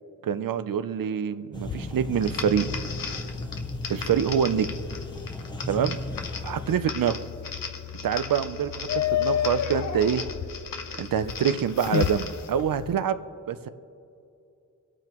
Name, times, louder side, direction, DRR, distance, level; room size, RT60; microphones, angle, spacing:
voice 1, 0.2-2.7 3.9-4.7 5.7-6.0 6.4-7.2 8.0-10.2 11.0-13.2 13.5-13.7, right 8 dB, 85° right, 12 dB, 0.5 m, -26 dB
sound 1, 1.5-6.7, equal, 15° left, 0.9 m, -36 dB
sound 2, 1.6-12.9, left 9 dB, 60° left, 0.5 m, -33 dB
sound 3, 2.2-12.5, left 5 dB, 85° left, 0.9 m, -38 dB
24.0 x 8.8 x 3.0 m, 2.7 s
wide cardioid pair, 60°, 33 cm